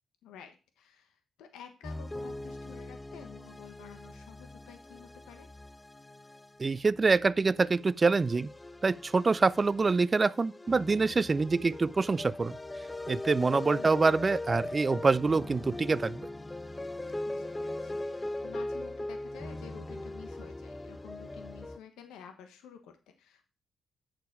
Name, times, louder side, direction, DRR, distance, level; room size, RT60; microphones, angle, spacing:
voice 1, 0.2-5.5 17.2-23.5, left 8 dB, 90° left, 1.2 m, -51 dB
sound 1, 1.8-21.8, left 2 dB, 20° left, 0.6 m, -40 dB
voice 2, 6.6-8.5 8.8-12.6 13.1-16.2, right 4 dB, 40° right, 0.5 m, -26 dB
9.1 x 6.9 x 4.7 m
supercardioid pair, 55°, 0 cm